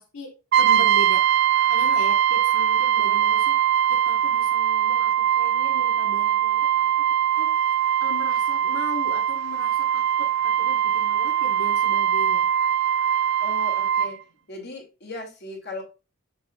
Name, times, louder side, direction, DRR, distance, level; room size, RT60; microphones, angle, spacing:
voice 1, 0.0-3.6 3.9-6.9 7.4-7.5 8.0-12.5, left 2 dB, 85° left, 2 dB, 1.4 m, -38 dB
Brass instrument, 0.5-14.1, right 10 dB, 50° right, 0.4 m, -21 dB
voice 2, 13.4-14.2 14.5-15.8, left 2 dB, 50° left, 2 dB, 2.4 m, -37 dB
7.1 x 6.9 x 2.4 m, 0.29 s
head